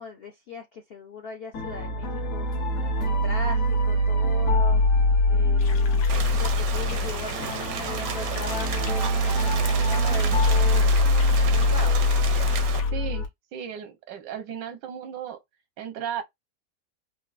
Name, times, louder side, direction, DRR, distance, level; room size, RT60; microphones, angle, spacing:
voice 1, 0.0-2.5 3.0-4.8 5.3-10.9 11.5-12.2, left 4 dB, 70° left, 0.5 m, -39 dB
sound 1, 1.5-13.3, left 1 dB, 55° left, 1.2 m, -23 dB
sound 2, 5.6-12.9, left 7 dB, 85° left, 1.5 m, -42 dB
Rain, 6.1-12.8, right 9 dB, 70° right, 0.9 m, -33 dB
voice 2, 12.9-15.4 15.8-16.2, right 8 dB, 90° right, 1.5 m, -35 dB
4.5 x 2.4 x 2.4 m
omnidirectional pair, 1.9 m